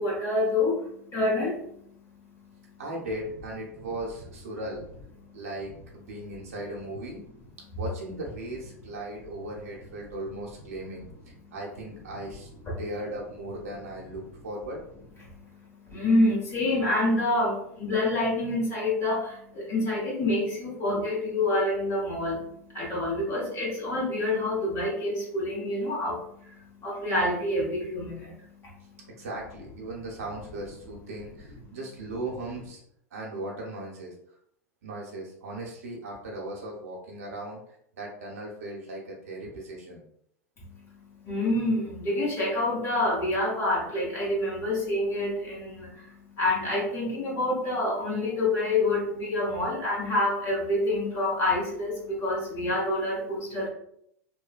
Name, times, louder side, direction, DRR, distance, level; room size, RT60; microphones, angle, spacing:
voice 1, 0.0-2.5 5.2-5.4 11.4-11.5 12.7-12.8 15.3-29.3 31.6-31.8 40.6-53.7, left 2 dB, 30° left, -4 dB, 1.3 m, -28 dB
voice 2, 2.8-4.8 5.3-7.2 7.8-11.1 11.5-12.5 12.8-14.8 29.1-32.8 33.1-34.1 34.8-37.6 37.9-40.0, right 1 dB, 65° right, -2 dB, 0.8 m, -37 dB
3.0 x 2.1 x 2.4 m, 0.71 s
figure-of-eight pair, 85°, 8 cm